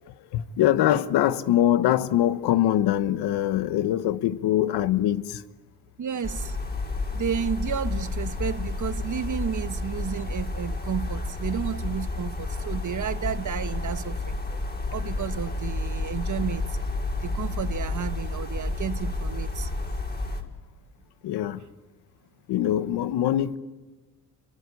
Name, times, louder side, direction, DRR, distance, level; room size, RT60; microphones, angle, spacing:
voice 1, 0.3-5.4 21.2-21.6 22.5-23.6, left 12 dB, 80° left, 1.2 m, -23 dB
voice 2, 6.0-6.6 7.1-14.3 14.9-16.8 17.2-19.7, right 8 dB, 50° right, 1.2 m, -32 dB
sound 1, 6.2-20.4, left 2 dB, 25° left, 4.9 m, -30 dB
28.0 x 23.5 x 8.4 m
supercardioid pair, 55°, 39 cm